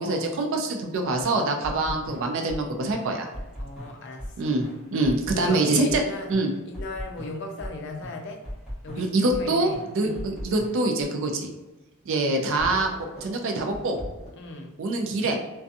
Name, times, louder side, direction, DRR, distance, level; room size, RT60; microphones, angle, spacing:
voice 1, 0.0-3.3 4.4-6.0 6.3-6.5 9.0-11.5 12.1-12.9 13.2-14.0 14.8-15.3, right 2 dB, 65° right, 3 dB, 0.4 m, -25 dB
sound 1, 1.2-2.6 2.9-4.3 4.6-7.7 8.0-9.4 9.7-11.0 12.6-14.3, equal, 5° right, 0.9 m, -38 dB
voice 2, 1.7-2.0 3.6-4.5 5.3-6.4 6.7-8.4 8.8-10.3 14.3-14.7, left 2 dB, 60° left, 3 dB, 0.5 m, -37 dB
2.5 x 2.3 x 2.6 m, 1.1 s
head